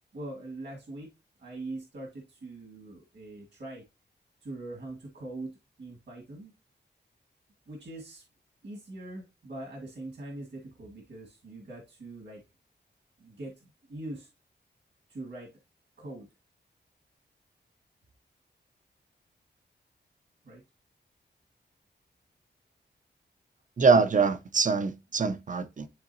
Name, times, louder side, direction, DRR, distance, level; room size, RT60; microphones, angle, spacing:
voice 1, 0.1-1.1 1.4-3.8 4.4-6.5 7.7-8.2 8.6-12.4 13.2-14.3 15.1-15.5 16.0-16.3 20.4-20.6, right 2 dB, 70° right, 1.9 m, -42 dB
voice 2, 23.8-25.9, right 4 dB, 45° right, 0.7 m, -24 dB
11.0 x 3.7 x 2.8 m
wide cardioid pair, 140°, 19 cm